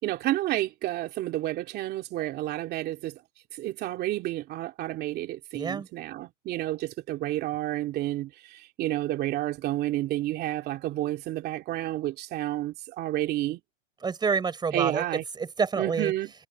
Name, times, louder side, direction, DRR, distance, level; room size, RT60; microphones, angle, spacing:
voice 1, 0.0-3.2 3.5-13.6 14.7-15.2 15.8-16.3, right 15 dB, 25° right, 2.7 m, -30 dB
voice 2, 5.5-5.9 14.0-16.1, right 5 dB, 10° right, 6.9 m, -28 dB
hypercardioid pair, 140°, 36 cm